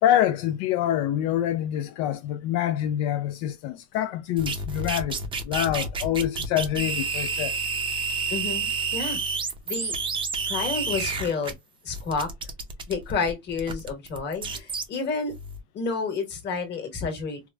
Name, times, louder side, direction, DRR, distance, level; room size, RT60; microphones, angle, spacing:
voice 1, 0.0-5.2 5.4-7.5, left 11 dB, 75° left, 0.5 m, -26 dB
sound 1, 4.4-11.5 11.9-14.8 15.3-15.6, right 4 dB, 20° right, 0.5 m, -29 dB
voice 2, 8.3-9.2 9.7-9.9 10.5-11.5 11.8-12.3 12.9-15.3 15.7-17.5, left 4 dB, 35° left, 1.3 m, -30 dB
4.7 x 2.1 x 2.3 m
cardioid pair, 160°, 29 cm